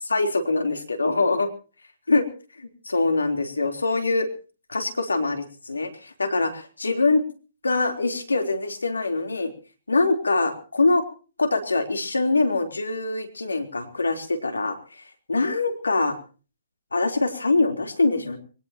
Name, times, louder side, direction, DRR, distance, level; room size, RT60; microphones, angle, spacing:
voice 1, 0.1-1.5 2.1-2.3 2.5-4.3 4.7-7.2 7.6-9.5 9.9-11.0 11.4-16.2 16.9-18.4, left 3 dB, 85° left, 6 dB, 3.6 m, -24 dB
23.0 x 20.0 x 2.9 m, 0.37 s
figure-of-eight pair, 130°, 0 cm